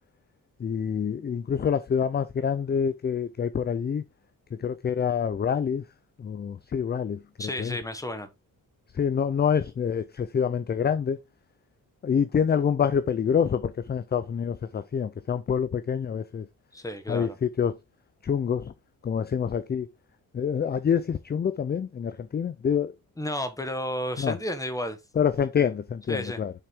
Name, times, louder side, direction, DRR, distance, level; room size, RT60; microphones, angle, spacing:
voice 1, 0.6-4.0 4.6-5.8 6.2-7.2 7.6-7.8 9.0-11.2 12.0-16.5 17.1-17.7 18.2-18.7 19.0-19.9 20.3-22.9 24.2-24.4 25.2-26.5, left 7 dB, 30° left, 0.5 m, -26 dB
voice 2, 7.4-8.3 16.7-17.4 23.2-25.0 26.1-26.4, equal, 10° left, 1.2 m, -32 dB
6.9 x 5.7 x 3.6 m
cardioid pair, 140°, 36 cm